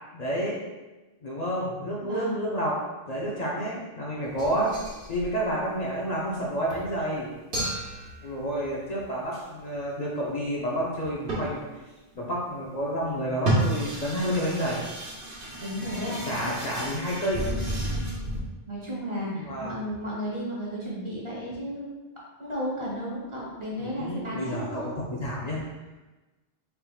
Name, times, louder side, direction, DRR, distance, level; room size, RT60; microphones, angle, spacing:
voice 1, 0.1-0.6 1.2-2.7 3.1-4.7 5.1-7.3 8.2-11.6 12.2-14.8 15.4-15.6 16.2-17.5 19.3-19.8 23.8-25.6, equal, 45° left, -5 dB, 0.7 m, -30 dB
voice 2, 2.0-2.5 15.6-16.5 18.7-21.9 22.4-24.9, equal, 30° right, -6 dB, 1.0 m, -33 dB
sound 1, 4.2-5.9 6.3-6.4 6.7-7.0 7.5-8.9 10.9-11.0 11.3-11.6 13.3-18.4, right 1 dB, 60° right, 1.1 m, -31 dB
4.4 x 3.4 x 2.3 m, 1.1 s
omnidirectional pair, 1.0 m